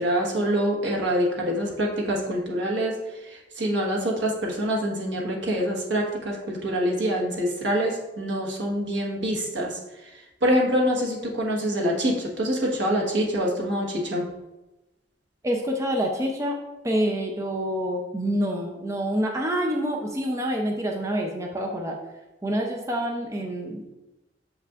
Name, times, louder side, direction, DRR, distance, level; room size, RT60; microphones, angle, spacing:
voice 1, 0.0-3.0 3.2-9.8 10.4-14.2, equal, 80° right, -1 dB, 1.3 m, -25 dB
voice 2, 15.4-16.6 16.8-22.0 22.4-23.9, equal, 15° right, 1 dB, 0.5 m, -27 dB
6.8 x 5.7 x 2.4 m, 1.0 s
head